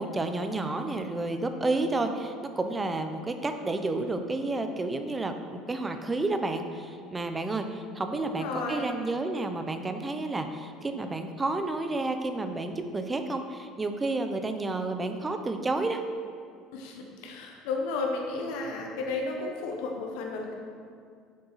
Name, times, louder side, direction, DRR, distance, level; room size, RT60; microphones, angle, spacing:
voice 1, 0.0-16.0, right 2 dB, 15° right, 7 dB, 0.5 m, -30 dB
voice 2, 8.1-8.9 16.7-20.5, left 3 dB, 85° left, 1 dB, 0.9 m, -33 dB
7.5 x 6.9 x 4.0 m, 2.2 s
cardioid pair, 155°, 0 cm